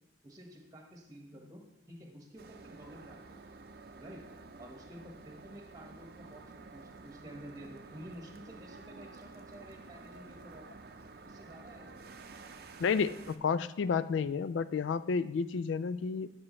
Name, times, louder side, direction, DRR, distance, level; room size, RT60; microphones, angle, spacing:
voice 1, 0.2-1.6 1.9-3.4 4.0-4.2 4.6-10.6 11.2-12.1, equal, 20° right, 1 dB, 1.3 m, -51 dB
sound 1, 2.4-13.4, right 3 dB, 55° right, 0.5 m, -51 dB
voice 2, 12.8-16.3, left 5 dB, 80° left, 15 dB, 0.3 m, -31 dB
12.5 x 6.1 x 3.1 m, 0.91 s
head